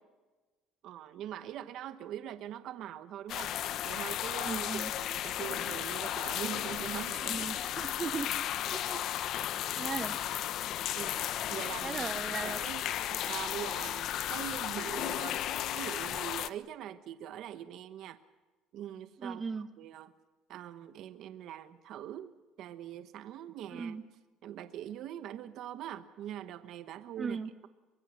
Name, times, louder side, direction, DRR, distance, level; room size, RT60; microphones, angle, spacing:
voice 1, 0.8-3.5 3.8-7.5 10.9-11.2 11.5-15.4 15.7-18.2 18.7-20.1 20.5-24.0 24.4-27.7, right 11 dB, 55° right, 10 dB, 1.1 m, -43 dB
sound 1, 3.3-16.5, left 12 dB, 50° left, 0.8 m, -34 dB
voice 2, 4.4-4.9 7.2-8.3 8.7-9.0 9.8-10.1 11.8-12.6 19.2-19.7 23.7-24.0 27.2-27.5, right 5 dB, 20° right, 9 dB, 1.0 m, -37 dB
24.5 x 21.5 x 6.3 m, 1.2 s
cardioid pair, 155°, 0 cm